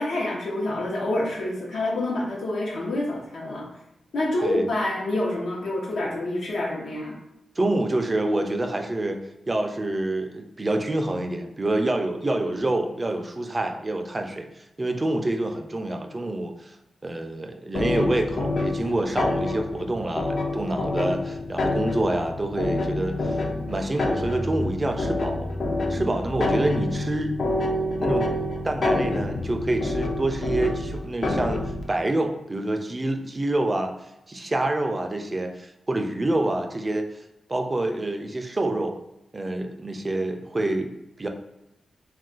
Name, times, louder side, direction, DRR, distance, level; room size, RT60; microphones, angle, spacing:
voice 1, 0.0-3.7 4.1-7.2, left 1 dB, 80° left, -3 dB, 0.8 m, -27 dB
voice 2, 7.6-16.8 17.0-23.4 23.7-25.5 25.9-27.3 28.0-28.3 28.6-31.6 31.9-33.9 34.3-37.0 37.5-38.9 39.3-41.3, right 1 dB, 25° right, 4 dB, 0.3 m, -27 dB
sound 1, 17.7-31.9, left 2 dB, 50° left, 0.4 m, -27 dB
2.3 x 2.3 x 3.7 m, 0.90 s
wide cardioid pair, 90°, 0 cm